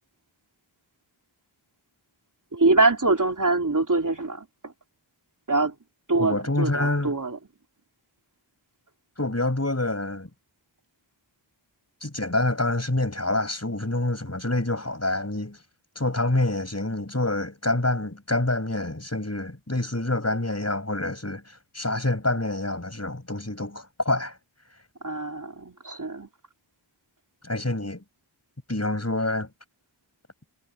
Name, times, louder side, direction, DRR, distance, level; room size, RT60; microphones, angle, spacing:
voice 1, 2.5-4.7 5.5-5.7 6.1-7.4 25.0-26.3, right 3 dB, 40° right, 3.4 m, -24 dB
voice 2, 6.2-7.1 9.2-10.3 12.0-15.6 16.0-24.4 27.4-28.0 28.7-29.5, left 2 dB, 30° left, 7.4 m, -27 dB
wide cardioid pair, 55°, 48 cm